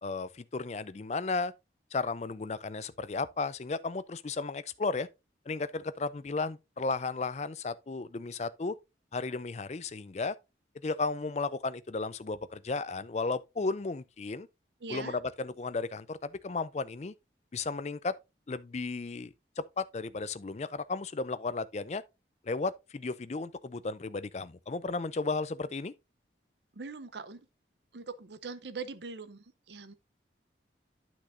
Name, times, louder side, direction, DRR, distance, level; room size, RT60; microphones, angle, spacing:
voice 1, 0.0-1.5 1.9-5.1 5.5-8.7 9.1-10.4 10.8-14.5 14.9-17.1 17.5-18.1 18.5-22.0 22.4-25.9, left 3 dB, 35° left, 0.4 m, -34 dB
voice 2, 14.8-15.2 26.7-27.4 27.9-29.9, right 4 dB, 70° right, 0.7 m, -42 dB
9.9 x 6.1 x 2.6 m
head